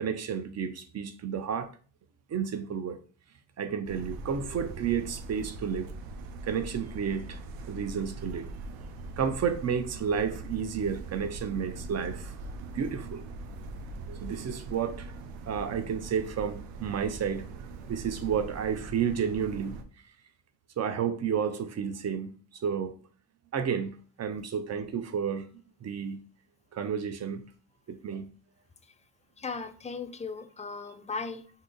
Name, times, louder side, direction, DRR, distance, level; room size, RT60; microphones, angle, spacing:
voice 1, 0.0-1.7 2.3-3.0 3.6-5.9 6.4-7.4 7.7-8.5 9.2-12.3 12.7-13.2 14.0-15.1 15.5-17.5 17.9-19.8 20.8-22.9 23.5-25.5 25.8-26.2 26.7-27.4 27.9-28.3, right 7 dB, 40° right, 0.5 m, -31 dB
sound 1, 3.8-19.8, right 3 dB, 90° right, 0.5 m, -42 dB
voice 2, 29.4-31.5, left 4 dB, 20° left, 0.3 m, -37 dB
2.7 x 2.4 x 3.7 m
supercardioid pair, 65°, 42 cm